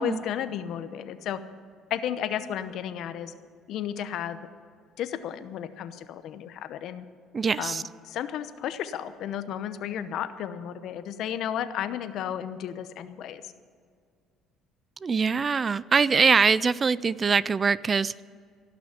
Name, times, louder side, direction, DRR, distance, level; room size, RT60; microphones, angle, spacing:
voice 1, 0.0-1.4 1.9-3.3 3.7-4.4 5.0-7.0 7.6-13.5, left 9 dB, 65° left, 12 dB, 0.8 m, -33 dB
voice 2, 7.3-7.8 15.0-18.2, right 5 dB, 30° right, 20 dB, 0.3 m, -23 dB
16.5 x 6.1 x 9.7 m, 2.1 s
cardioid pair, 110°, 0 cm